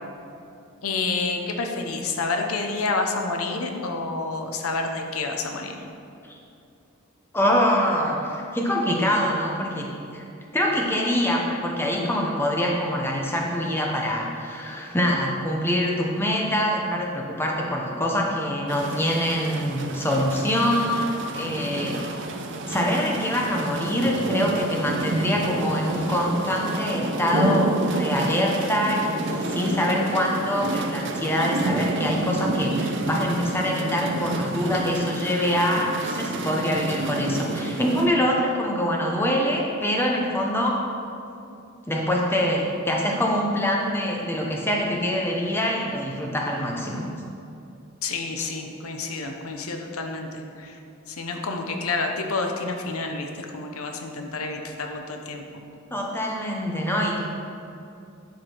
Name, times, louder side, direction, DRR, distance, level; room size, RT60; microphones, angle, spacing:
voice 1, 0.8-5.7 48.0-50.8 51.1-55.4, left 3 dB, 80° left, 3 dB, 0.9 m, -29 dB
voice 2, 7.3-10.2 10.5-22.1 22.7-40.8 41.9-47.1 55.9-57.2, equal, 10° left, -1 dB, 0.9 m, -24 dB
Thunder rolling and hail, 18.7-38.1, right 2 dB, 55° right, 0.6 m, -29 dB
11.0 x 4.9 x 4.6 m, 2.6 s
head